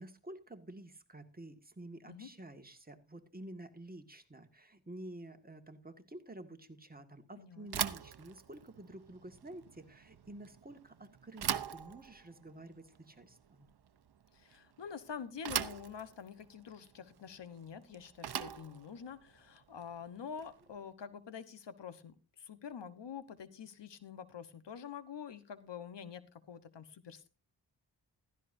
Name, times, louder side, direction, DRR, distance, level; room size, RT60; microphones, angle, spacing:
voice 1, 0.0-13.7, right 1 dB, 20° right, 6 dB, 1.9 m, -50 dB
voice 2, 7.4-7.7 14.3-27.3, left 7 dB, 80° left, 13 dB, 1.2 m, -47 dB
Bicycle / Thump thud, 7.7-20.8, right 8 dB, 65° right, 0.9 m, -42 dB
15.5 x 13.5 x 2.7 m, 0.30 s
cardioid pair, 65°, 42 cm